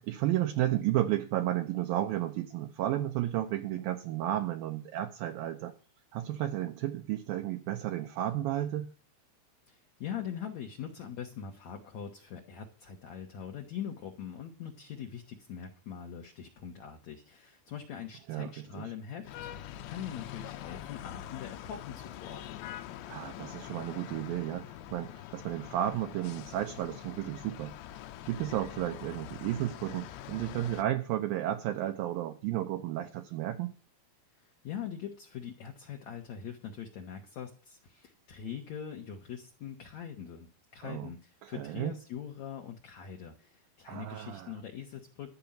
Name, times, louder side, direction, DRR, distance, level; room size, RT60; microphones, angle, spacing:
voice 1, 0.0-5.7 6.1-8.9 18.3-18.8 23.1-27.7 28.3-33.8 40.8-41.1 41.4-41.9 43.9-44.5, right 13 dB, 80° right, 5 dB, 2.1 m, -33 dB
voice 2, 9.7-22.7 34.4-45.3, left 8 dB, 65° left, 2 dB, 1.8 m, -42 dB
sound 1, 19.3-30.8, left 12 dB, 85° left, 2.9 m, -44 dB
13.0 x 5.4 x 8.9 m, 0.38 s
omnidirectional pair, 5.1 m